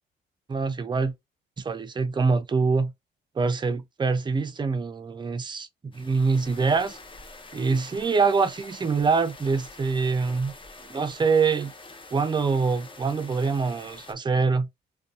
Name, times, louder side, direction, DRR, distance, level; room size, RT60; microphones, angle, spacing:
voice 1, 0.5-1.1 1.6-2.9 3.4-5.7 5.9-7.0 7.5-10.5 10.9-11.7 12.1-14.7, right 4 dB, 25° right, 0.5 m, -24 dB
sound 1, 5.9-14.1, left 2 dB, 25° left, 0.7 m, -46 dB
2.6 x 2.3 x 2.3 m
cardioid pair, 90°, 20 cm